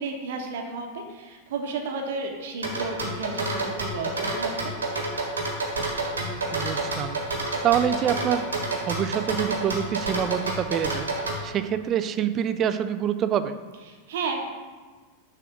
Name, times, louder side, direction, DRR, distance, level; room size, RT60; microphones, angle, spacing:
voice 1, 0.0-4.7 13.9-14.4, right 3 dB, 55° right, 3 dB, 1.0 m, -32 dB
sound 1, 2.6-11.4, right 2 dB, 75° right, 1.3 m, -28 dB
voice 2, 6.5-7.2 7.6-8.4 8.9-11.1 11.4-13.5, right 9 dB, 30° right, 11 dB, 0.4 m, -26 dB
6.9 x 3.5 x 5.8 m, 1.4 s
figure-of-eight pair, 90°, 0 cm